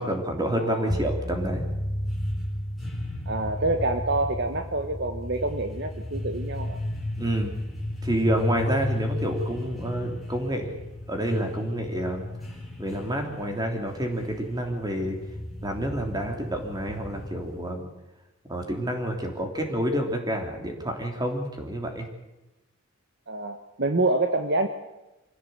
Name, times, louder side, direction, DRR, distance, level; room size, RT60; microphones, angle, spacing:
voice 1, 0.0-1.6 7.2-7.6 8.0-10.7 11.1-12.2 12.8-15.2 15.6-17.9 18.5-22.1, right 1 dB, 20° right, 3 dB, 3.2 m, -29 dB
voice 2, 0.6-0.9 3.3-6.8 23.3-24.7, right 2 dB, 50° right, 7 dB, 1.2 m, -27 dB
sound 1, 0.9-17.7, left 1 dB, ahead, 3.9 m, -33 dB
25.0 x 16.0 x 8.1 m, 1.0 s
head